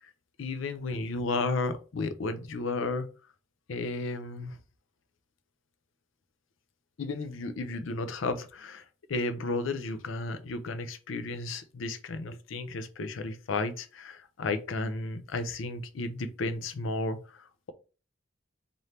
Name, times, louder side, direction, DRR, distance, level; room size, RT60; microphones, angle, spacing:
voice 1, 0.4-3.1 3.7-4.6 7.0-17.7, left 3 dB, 75° left, 10 dB, 0.5 m, -33 dB
3.3 x 2.6 x 4.2 m, 0.35 s
head